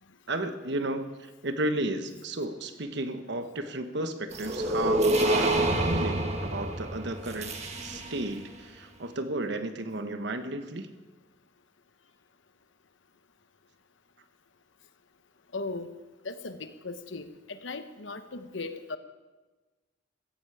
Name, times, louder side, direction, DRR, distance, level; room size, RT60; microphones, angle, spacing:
voice 1, 0.3-10.9, right 1 dB, 65° right, 9 dB, 1.2 m, -33 dB
sound 1, 4.3-8.3, right 1 dB, 35° right, 1.6 m, -27 dB
voice 2, 15.5-15.9 16.2-19.0, left 3 dB, 80° left, 10 dB, 1.1 m, -37 dB
15.5 x 14.5 x 4.9 m, 1.2 s
head